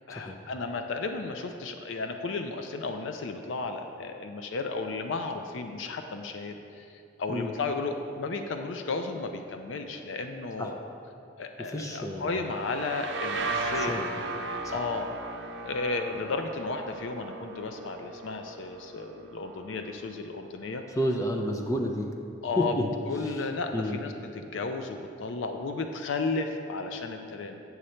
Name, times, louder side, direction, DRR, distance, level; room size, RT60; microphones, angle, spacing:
voice 1, 0.1-10.8 11.4-15.1 15.6-20.8 22.4-22.7 23.1-27.6, left 3 dB, 80° left, 6 dB, 0.5 m, -34 dB
voice 2, 11.6-12.4 13.7-14.1 14.6-14.8 20.9-22.1 22.6-22.9 23.2-23.4 23.7-24.0, left 1 dB, 15° left, 2 dB, 0.4 m, -30 dB
sound 1, 12.5-20.0, right 2 dB, 70° right, 0.8 m, -36 dB
8.0 x 6.4 x 4.3 m, 2.6 s
head